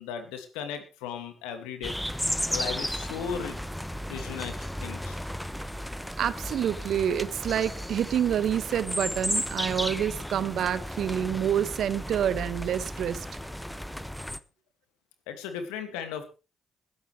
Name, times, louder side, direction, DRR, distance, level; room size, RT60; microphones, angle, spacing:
voice 1, 0.0-1.9 2.5-3.6 4.1-5.2 15.3-16.2, left 7 dB, 80° left, 7 dB, 2.3 m, -36 dB
sound 1, 1.8-14.4, equal, 5° left, 1.1 m, -34 dB
voice 2, 6.2-13.3, right 9 dB, 65° right, 15 dB, 1.2 m, -28 dB
20.5 x 11.0 x 3.4 m, 0.31 s
hypercardioid pair, 45°, 0 cm